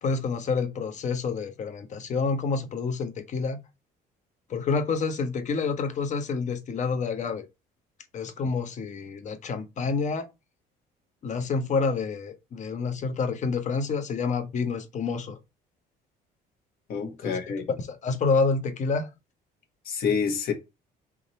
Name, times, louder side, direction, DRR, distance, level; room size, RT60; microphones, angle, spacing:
voice 1, 0.0-3.6 4.5-7.5 8.1-10.3 11.2-15.4 17.2-17.4 17.9-19.1, left 4 dB, 45° left, 0.9 m, -28 dB
voice 2, 16.9-17.7 19.8-20.5, left 6 dB, 65° left, 1.4 m, -28 dB
3.6 x 3.0 x 4.1 m
cardioid pair, 110°, 17 cm